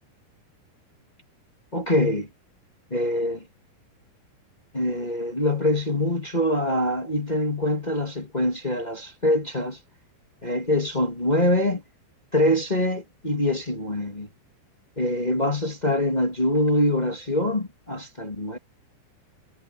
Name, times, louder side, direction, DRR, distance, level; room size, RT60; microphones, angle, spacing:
voice 1, 1.7-2.3 2.9-3.4 4.7-9.8 10.4-11.8 12.3-14.3 14.9-18.6, left 1 dB, 15° left, 1.5 m, -24 dB
omnidirectional pair, 4.8 m